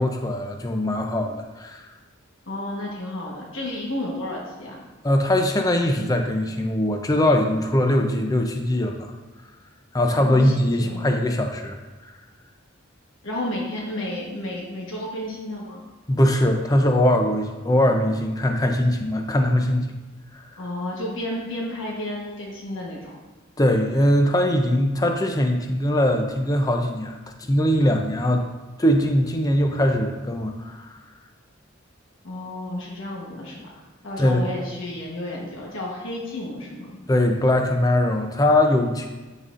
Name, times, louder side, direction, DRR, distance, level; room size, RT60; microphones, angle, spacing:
voice 1, 0.0-1.9 5.0-9.1 9.9-11.8 16.1-19.9 20.3-20.4 23.6-27.2 27.5-28.5 28.8-31.0 34.2-34.4 37.1-39.1, left 1 dB, 20° left, 4 dB, 0.5 m, -21 dB
voice 2, 2.5-4.8 10.1-11.0 13.2-15.8 20.6-23.1 32.2-37.0, left 1 dB, 80° left, -3 dB, 1.2 m, -32 dB
12.0 x 4.1 x 2.5 m, 1.2 s
head